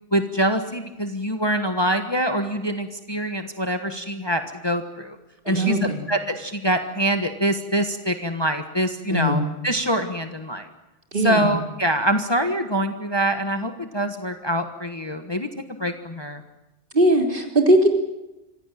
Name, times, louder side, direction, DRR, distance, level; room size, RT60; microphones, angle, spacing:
voice 1, 0.1-5.2 5.4-10.7 11.2-15.5 15.8-16.4, right 1 dB, 20° left, 6 dB, 1.4 m, -24 dB
voice 2, 5.5-6.0 9.1-9.4 11.1-11.5 16.9-17.9, right 1 dB, 45° right, 2 dB, 3.5 m, -19 dB
25.5 x 16.5 x 9.2 m, 0.99 s
omnidirectional pair, 1.2 m